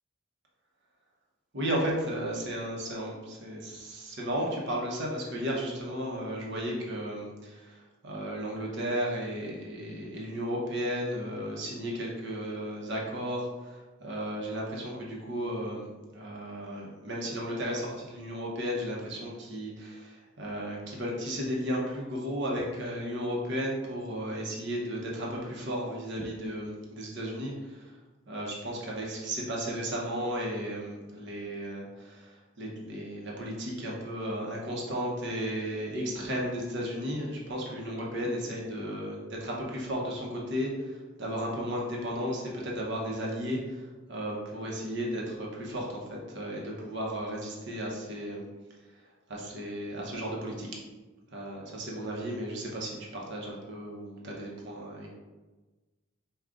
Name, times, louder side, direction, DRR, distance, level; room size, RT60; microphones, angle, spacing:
voice 1, 1.5-27.9 28.3-48.4 49.3-50.7 51.3-55.1, equal, 55° right, -2 dB, 0.8 m, -34 dB
4.7 x 2.3 x 3.7 m, 1.2 s
head